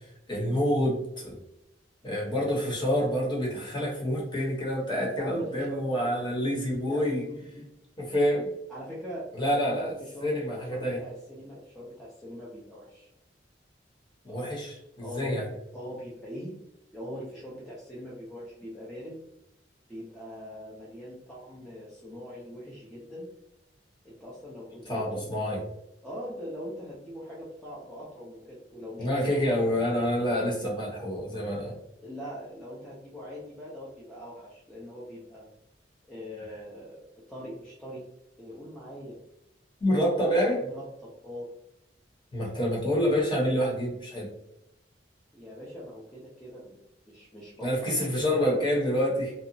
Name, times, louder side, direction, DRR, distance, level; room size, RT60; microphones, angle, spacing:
voice 1, 0.3-1.4 2.0-7.2 8.0-8.5 9.3-9.9 10.2-11.0 14.2-15.5 24.9-25.6 29.0-31.8 39.8-40.6 42.3-44.3 47.6-49.3, equal, 25° left, -4 dB, 0.9 m, -27 dB
voice 2, 5.0-6.4 6.9-7.6 8.7-13.1 15.0-15.4 15.7-16.5 16.9-19.2 19.9-23.3 24.0-25.2 26.0-29.8 32.0-35.5 36.1-37.0 37.3-38.0 38.4-39.2 39.8-40.3 40.6-41.5 45.3-46.8 47.1-48.6, equal, 5° left, -8 dB, 0.5 m, -42 dB
2.8 x 2.0 x 2.6 m, 0.85 s
head